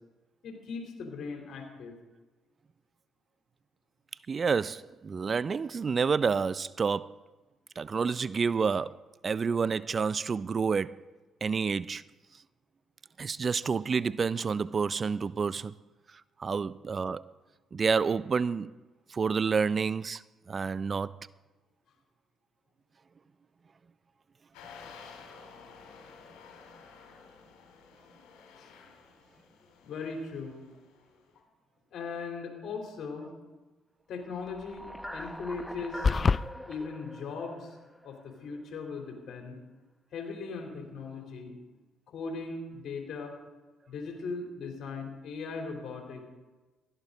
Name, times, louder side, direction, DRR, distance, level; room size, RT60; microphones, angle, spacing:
voice 1, 0.4-1.9 28.6-28.7 29.8-30.6 31.9-33.3 34.1-36.1 36.7-37.7 38.0-39.6 40.1-41.6 42.1-43.4 43.9-46.2, left 4 dB, 65° left, 3.6 m, -39 dB
voice 2, 4.3-7.2 7.8-11.0 11.4-12.0 13.2-15.7 16.4-17.2 17.7-18.7 19.1-20.2 20.5-21.1, right 5 dB, 40° right, 0.4 m, -29 dB
sound 1, 24.5-31.2, left 5 dB, 85° left, 2.5 m, -52 dB
sound 2, 34.3-38.6, equal, 5° left, 1.0 m, -43 dB
sound 3, 36.0-36.4, left 5 dB, 40° left, 0.3 m, -23 dB
16.0 x 12.5 x 4.0 m
supercardioid pair, 65°, 0 cm